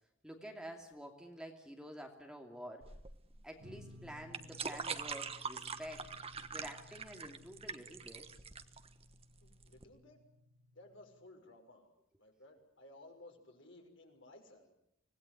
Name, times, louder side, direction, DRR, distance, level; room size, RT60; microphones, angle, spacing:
voice 1, 0.2-2.9 3.4-6.1 6.5-8.2, equal, 5° right, 2 dB, 2.8 m, -49 dB
sound 1, 2.8-9.8, right 5 dB, 30° right, 1.3 m, -44 dB
sound 2, 3.6-11.3, left 1 dB, 80° right, 2.7 m, -59 dB
voice 2, 9.4-10.2 10.7-11.9 12.2-14.7, left 2 dB, 65° left, 3 dB, 6.2 m, -57 dB
25.5 x 19.5 x 9.5 m, 0.77 s
head